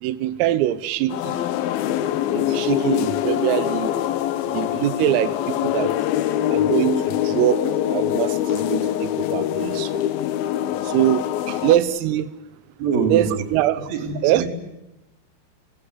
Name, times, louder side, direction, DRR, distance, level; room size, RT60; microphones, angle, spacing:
voice 1, 0.0-1.4 2.3-3.9 4.5-5.9 6.5-7.6 7.9-10.0 10.8-12.3 13.1-13.9 14.2-14.5, right 13 dB, 90° right, 15 dB, 3.8 m, -23 dB
sound 1, 1.1-11.8, left 11 dB, 90° left, 2.1 m, -24 dB
voice 2, 12.8-13.4 13.9-14.5, right 5 dB, 50° right, 4 dB, 5.0 m, -24 dB
30.0 x 15.5 x 9.9 m, 0.94 s
omnidirectional pair, 5.8 m